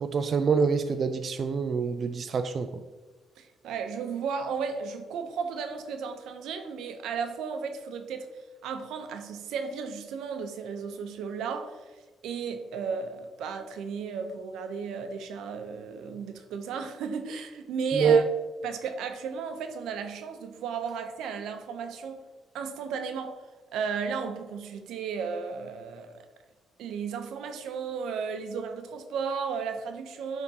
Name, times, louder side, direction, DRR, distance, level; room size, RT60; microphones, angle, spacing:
voice 1, 0.0-2.8 17.9-18.2, right 6 dB, 50° right, 0.3 m, -25 dB
voice 2, 3.4-8.3 8.6-18.2 18.6-22.2 22.5-23.4 23.7-26.3 26.8-30.4, right 6 dB, 85° right, 0.6 m, -34 dB
10.5 x 3.6 x 2.8 m
cardioid pair, 90°, 0 cm